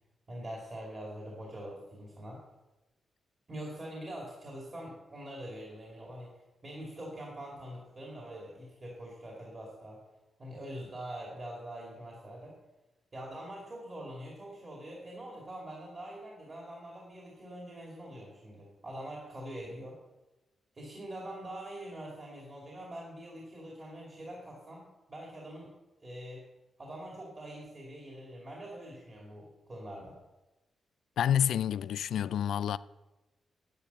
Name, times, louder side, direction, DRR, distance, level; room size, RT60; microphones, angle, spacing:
voice 1, 0.3-2.4 3.5-10.0 10.4-12.5 13.1-20.0 20.7-25.7 26.0-26.4 26.8-30.2, right 1 dB, 30° right, 2.4 m, -44 dB
voice 2, 31.2-32.8, left 10 dB, 85° left, 0.3 m, -28 dB
10.5 x 9.4 x 6.9 m
wide cardioid pair, 175°, 0 cm